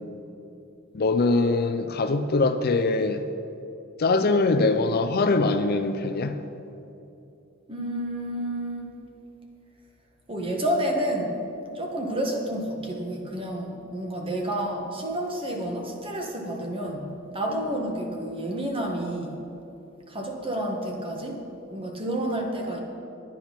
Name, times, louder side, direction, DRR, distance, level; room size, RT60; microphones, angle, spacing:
voice 1, 0.9-3.2 4.0-6.4, left 3 dB, 50° left, 8 dB, 0.5 m, -22 dB
voice 2, 7.7-8.9 10.3-11.4 11.7-19.4 20.1-21.4 21.7-22.8, right 1 dB, 25° right, 0 dB, 1.5 m, -30 dB
10.5 x 9.9 x 5.9 m, 2.8 s
head